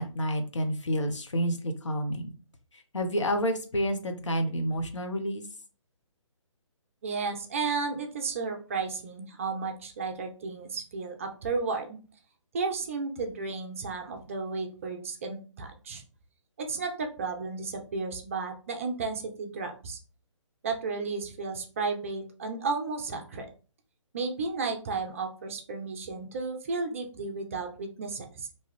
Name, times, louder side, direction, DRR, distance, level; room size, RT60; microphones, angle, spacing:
voice 1, 0.0-2.3 2.7-5.4, equal, 65° left, 5 dB, 0.7 m, -29 dB
voice 2, 7.0-12.0 12.5-16.0 16.6-20.0 20.6-23.5 24.1-28.5, right 4 dB, 25° right, 3 dB, 0.4 m, -33 dB
2.6 x 2.3 x 3.2 m, 0.36 s
figure-of-eight pair, 140°, 16 cm